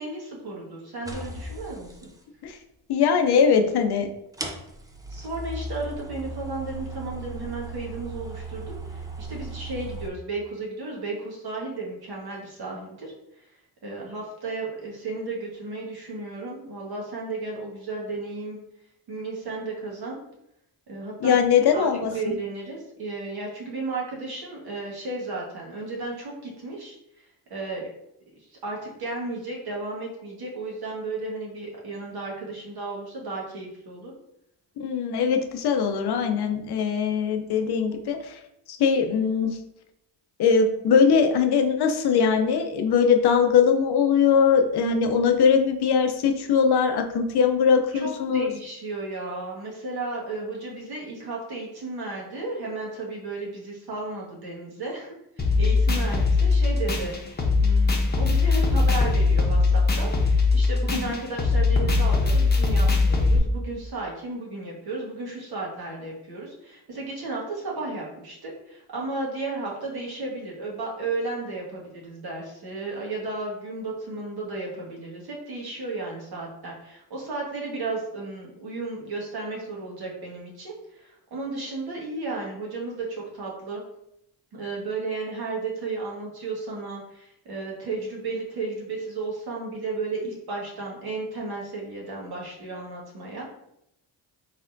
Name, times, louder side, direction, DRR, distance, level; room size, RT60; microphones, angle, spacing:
voice 1, 0.0-2.1 5.1-13.4 13.8-18.6 19.1-20.2 20.9-21.4 21.7-21.9 22.1-27.2 27.5-27.9 28.5-34.1 47.9-83.8 84.5-93.4, right 3 dB, 60° right, -2 dB, 1.5 m, -34 dB
sound 1, 1.0-2.1 3.4-3.5 4.3-10.1, right 2 dB, 10° right, 0.4 m, -37 dB
voice 2, 2.9-4.1 21.2-22.0 34.8-38.2 38.7-39.5 40.4-48.5, left 6 dB, 65° left, 5 dB, 0.7 m, -21 dB
sound 2, 55.4-63.4, left 3 dB, 25° left, 0.9 m, -21 dB
4.2 x 3.5 x 2.6 m, 0.80 s
cardioid pair, 90°, 41 cm